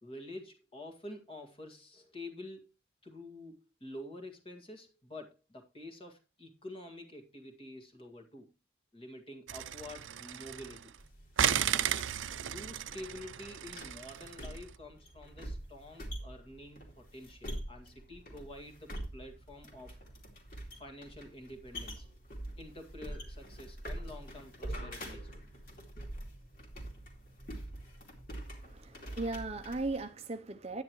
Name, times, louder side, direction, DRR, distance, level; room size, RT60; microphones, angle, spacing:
voice 1, 0.0-2.7 3.0-8.5 8.9-10.9 11.6-12.1 12.5-20.0 20.7-22.1 22.6-25.3, left 1 dB, 30° left, 1.8 m, -48 dB
sound 1, 9.5-11.0 11.4-14.6, right 9 dB, 90° right, 0.6 m, -34 dB
sound 2, 11.0-30.0, right 1 dB, 45° left, 2.6 m, -45 dB
voice 2, 28.6-30.8, right 2 dB, 35° right, 0.6 m, -37 dB
9.8 x 9.8 x 3.1 m
head